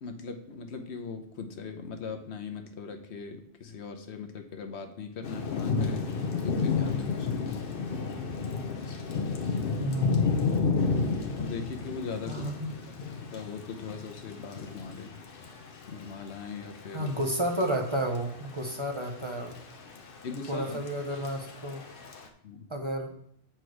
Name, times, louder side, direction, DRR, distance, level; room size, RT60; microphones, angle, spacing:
voice 1, 0.0-6.1 6.4-7.5 8.8-9.1 11.0-12.5 13.3-15.1 15.9-17.1 20.2-20.8 22.4-22.6, left 5 dB, 85° left, 6 dB, 1.1 m, -40 dB
Thunder / Rain, 5.2-22.3, left 4 dB, 60° left, 0.9 m, -32 dB
voice 2, 9.8-10.4 12.3-12.7 16.9-19.6 20.5-21.8 22.7-23.1, right 1 dB, 30° right, 2 dB, 0.8 m, -31 dB
8.1 x 4.4 x 4.7 m, 0.68 s
omnidirectional pair, 1.1 m